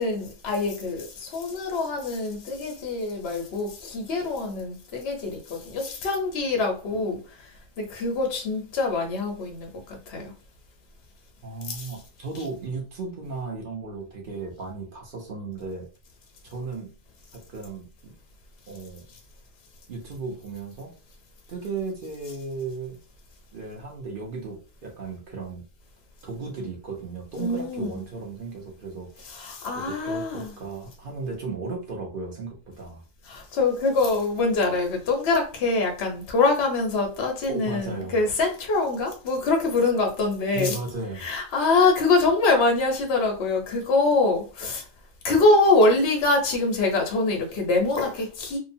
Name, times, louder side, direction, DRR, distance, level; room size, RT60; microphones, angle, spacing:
voice 1, 0.0-10.3 11.7-11.9 27.4-28.0 29.2-30.6 33.3-40.8 41.2-44.8 45.2-48.6, left 3 dB, 60° left, 0.7 m, -24 dB
voice 2, 11.4-15.9 16.4-17.0 17.3-18.1 18.7-19.0 19.9-20.9 21.5-23.0 23.5-25.6 26.2-29.3 29.7-33.0 37.5-38.2 40.5-41.2, right 3 dB, 55° right, 0.6 m, -35 dB
2.8 x 2.1 x 2.6 m
omnidirectional pair, 1.7 m